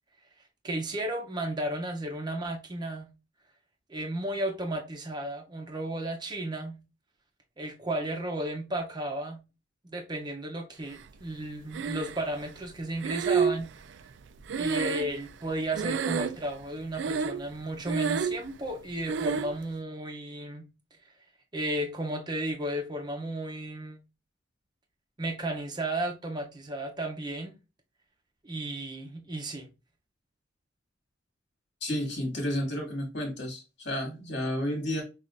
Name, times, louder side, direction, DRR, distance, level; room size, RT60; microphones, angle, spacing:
voice 1, 0.6-3.1 3.9-6.8 7.6-9.4 9.9-13.7 14.6-20.6 21.5-24.0 25.2-27.5 28.4-29.7, right 1 dB, 25° right, 0.6 m, -33 dB
Breathing, 11.7-12.4 13.0-15.5 15.7-16.6 16.9-17.5 17.8-18.5 19.1-19.6, right 6 dB, 75° right, 0.4 m, -29 dB
voice 2, 31.8-35.0, left 1 dB, 65° left, 2.0 m, -31 dB
5.8 x 2.4 x 2.5 m
head